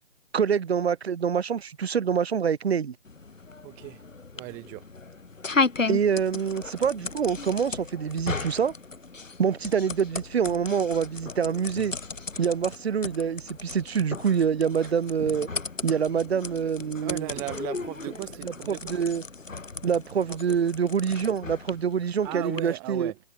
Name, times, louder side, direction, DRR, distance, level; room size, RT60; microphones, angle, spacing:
voice 1, 0.3-3.0 5.9-8.7 9.4-11.9 12.4-15.5 15.8-17.3 18.4-19.2 19.8-23.1, right 7 dB, 55° right, 0.5 m, -26 dB
sound 1, 3.1-22.6, left 4 dB, 85° left, 4.8 m, -35 dB
voice 2, 3.6-4.0 4.3-4.8 17.0-19.0 20.3-20.6 22.2-23.2, right 26 dB, 5° right, 1.5 m, -37 dB
hypercardioid pair, 170°, 38 cm